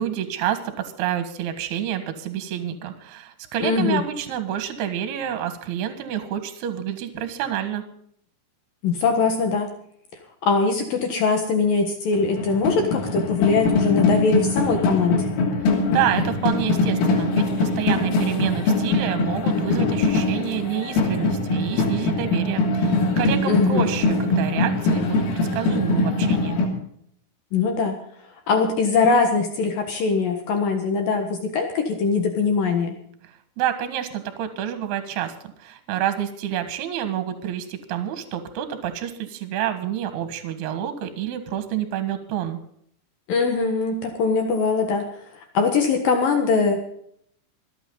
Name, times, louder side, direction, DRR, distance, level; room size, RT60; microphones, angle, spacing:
voice 1, 0.0-7.8 15.6-26.6 33.6-42.6, right 10 dB, 60° right, 9 dB, 3.2 m, -28 dB
voice 2, 3.6-4.0 8.8-9.7 10.4-15.3 23.5-23.9 27.5-28.0 28.5-33.0 43.3-47.0, left 4 dB, 65° left, 5 dB, 2.3 m, -22 dB
sound 1, 12.1-26.7, left 2 dB, 90° left, 5.7 m, -22 dB
26.5 x 9.4 x 3.9 m, 0.67 s
omnidirectional pair, 6.0 m